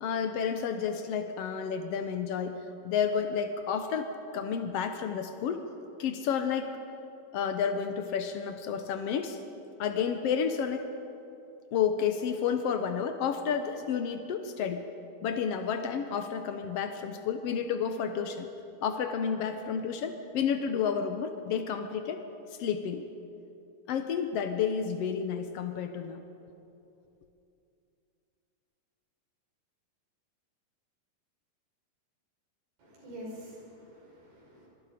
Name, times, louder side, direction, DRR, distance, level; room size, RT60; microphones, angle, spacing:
voice 1, 0.0-2.5 2.8-5.6 6.0-6.8 7.3-9.4 9.8-10.9 11.7-14.8 15.2-18.5 18.8-22.2 22.6-23.0 23.9-26.2, left 7 dB, 90° left, 7 dB, 1.3 m, -31 dB
voice 2, 32.8-34.7, equal, 85° right, -3 dB, 7.6 m, -46 dB
26.5 x 22.0 x 5.1 m, 2.8 s
omnidirectional pair, 4.1 m